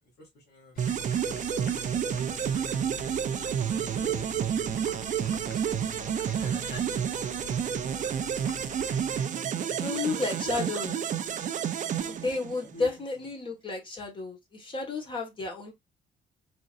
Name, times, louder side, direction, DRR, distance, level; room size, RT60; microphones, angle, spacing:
voice 1, 0.0-1.1 1.4-3.0 9.9-10.7 12.6-12.9, right 1 dB, 75° left, 2.6 m, -49 dB
sound 1, 0.8-9.3, left 9 dB, 55° left, 0.6 m, -46 dB
sound 2, 0.8-12.9, right 8 dB, 45° right, 0.6 m, -30 dB
voice 2, 6.3-7.4 8.9-9.3 9.8-10.9 12.1-15.7, left 3 dB, 30° left, 1.7 m, -33 dB
4.3 x 3.7 x 2.5 m
cardioid pair, 155°, 17 cm